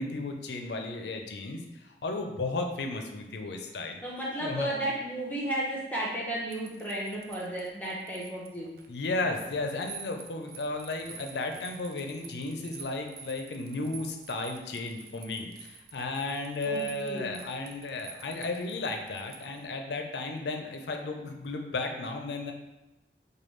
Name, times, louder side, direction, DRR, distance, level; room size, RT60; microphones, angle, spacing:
voice 1, 0.0-4.0 4.4-4.7 8.9-22.5, left 2 dB, 70° left, 4 dB, 0.5 m, -34 dB
voice 2, 4.0-8.7 16.6-17.4, right 1 dB, 10° left, -6 dB, 0.7 m, -33 dB
sound 1, 6.5-19.6, right 7 dB, 55° right, 0.4 m, -49 dB
4.9 x 2.3 x 3.1 m, 0.97 s
head